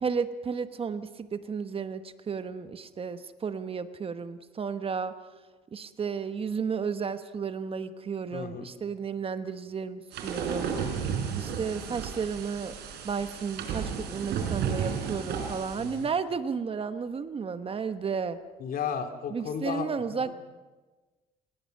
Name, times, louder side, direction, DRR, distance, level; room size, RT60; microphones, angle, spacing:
voice 1, 0.0-5.1 5.7-10.7 11.4-12.7 13.0-18.4 19.3-20.3, right 6 dB, 35° right, 11 dB, 1.1 m, -33 dB
voice 2, 8.3-8.7 10.9-11.2 15.8-16.1 18.6-20.3, left 7 dB, 55° left, 6 dB, 2.6 m, -35 dB
sound 1, 10.1-16.0, right 7 dB, 75° right, 4.6 m, -33 dB
27.5 x 19.5 x 6.6 m, 1.3 s
cardioid pair, 110°, 17 cm